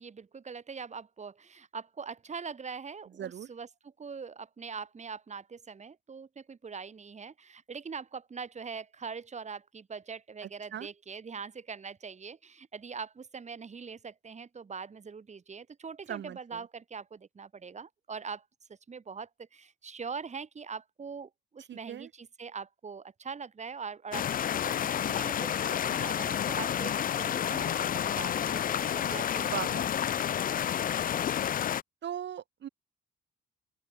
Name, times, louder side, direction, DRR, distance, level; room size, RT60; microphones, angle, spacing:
voice 1, 0.0-3.7 4.0-18.4 18.7-29.8, right 5 dB, 35° right, 3.3 m, -42 dB
voice 2, 3.2-3.5 10.4-10.9 16.1-16.7 21.7-22.1 29.4-30.0 32.0-32.7, right 10 dB, 65° right, 3.9 m, -39 dB
sound 1, 24.1-31.8, left 9 dB, 45° left, 0.5 m, -30 dB
open air
cardioid pair, 90°, 20 cm